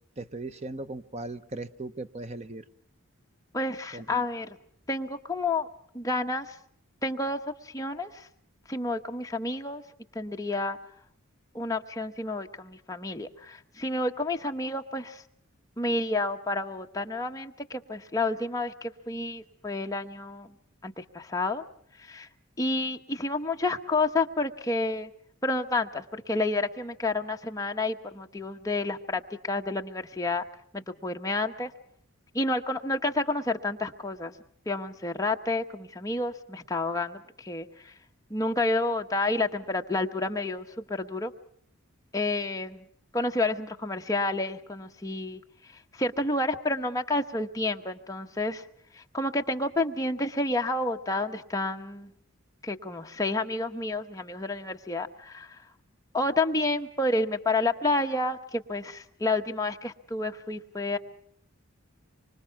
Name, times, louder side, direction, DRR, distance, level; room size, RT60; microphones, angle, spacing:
voice 1, 0.2-2.6 3.9-4.1, right 2 dB, 30° right, 11 dB, 0.9 m, -38 dB
voice 2, 3.5-4.6 4.9-5.7 5.9-6.6 7.0-8.3 8.7-9.8 10.1-10.8 11.5-15.2 15.8-20.5 20.8-21.6 22.0-22.3 22.6-25.1 25.4-30.4 30.7-31.7 32.3-34.3 34.7-38.0 38.3-41.3 42.1-42.9 43.1-48.7 48.9-52.1 52.6-55.6 56.1-61.0, left 2 dB, 15° left, 3 dB, 1.1 m, -30 dB
25.5 x 25.0 x 5.9 m, 0.64 s
head